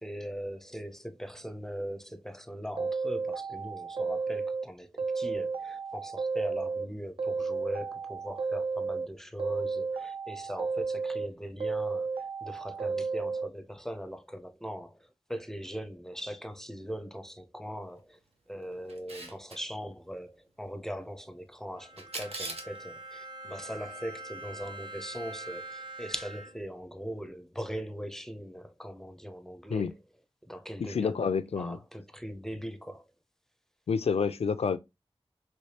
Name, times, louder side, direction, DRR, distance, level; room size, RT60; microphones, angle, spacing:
voice 1, 0.0-12.1 12.4-18.2 18.5-29.9 30.5-31.2 31.5-33.0, equal, 5° left, 0.5 m, -40 dB
sound 1, 2.8-4.7 5.0-6.9 7.2-9.1 9.4-11.3 11.6-13.5, right 4 dB, 65° right, 0.4 m, -33 dB
Camera, 18.9-19.6 22.0-22.8, right 2 dB, 80° right, 0.8 m, -39 dB
Bowed string instrument, 21.8-26.8, right 2 dB, 50° right, 1.0 m, -44 dB
voice 2, 30.8-31.8 33.9-34.8, left 5 dB, 85° left, 0.4 m, -28 dB
3.2 x 3.1 x 2.8 m
wide cardioid pair, 85°, 10 cm